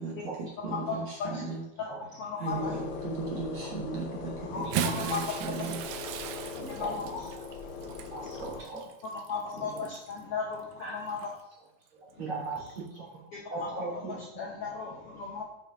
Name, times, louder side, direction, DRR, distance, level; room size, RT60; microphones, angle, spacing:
voice 1, 0.0-1.6 2.4-5.9, right 4 dB, 70° right, -1 dB, 2.0 m, -37 dB
voice 2, 0.9-1.4 1.8-2.7 4.5-5.2 6.6-7.2 8.0-8.1 9.1-11.3 13.3-15.4, left 5 dB, 65° left, -3 dB, 1.5 m, -36 dB
sound 1, 2.5-8.6, left 5 dB, 85° left, 2.2 m, -40 dB
Bathtub (filling or washing) / Splash splatter, 4.5-10.2 11.1-11.3 12.7-12.8, right 9 dB, 85° right, 2.1 m, -37 dB
voice 3, 6.6-7.2 8.1-8.8 9.6-9.9 10.8-10.9 11.9-14.2, right 3 dB, 40° right, -7 dB, 3.7 m, -39 dB
7.5 x 5.5 x 3.7 m, 0.92 s
omnidirectional pair, 3.5 m